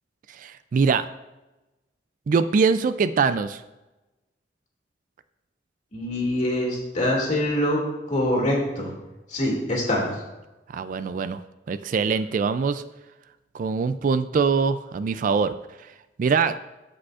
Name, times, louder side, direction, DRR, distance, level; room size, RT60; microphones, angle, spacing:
voice 1, 0.4-1.0 2.3-3.6 10.7-11.4 11.7-12.8 13.5-15.5 16.2-16.6, right 5 dB, 50° right, 13 dB, 0.3 m, -23 dB
voice 2, 5.9-7.8 8.1-8.9 9.3-10.2, left 1 dB, 45° left, -2 dB, 2.3 m, -24 dB
14.5 x 5.0 x 2.4 m, 1.0 s
head